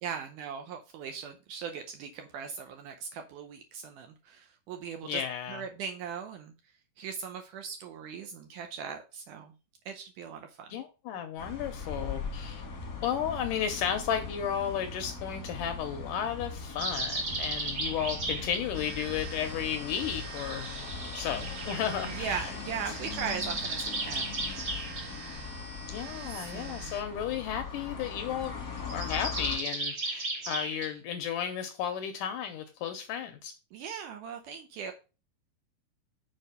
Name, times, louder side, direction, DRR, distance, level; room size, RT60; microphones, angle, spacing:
voice 1, 0.0-5.2 5.5-6.5 7.0-9.5 9.9-10.7 22.1-24.3 26.2-27.0 33.7-34.9, right 7 dB, 75° right, 2.0 m, -39 dB
voice 2, 5.0-5.6 10.7-12.6 13.0-20.7 21.1-22.5 25.9-28.5 28.9-33.5, left 8 dB, 75° left, 2.0 m, -33 dB
sound 1, 11.4-29.6, left 4 dB, 45° left, 1.2 m, -40 dB
sound 2, 16.8-18.6 20.3-22.2 22.8-25.1 28.8-30.9, right 2 dB, 40° right, 1.7 m, -35 dB
sound 3, 18.7-27.0, right 3 dB, 60° right, 3.2 m, -46 dB
6.6 x 4.7 x 5.4 m
omnidirectional pair, 4.3 m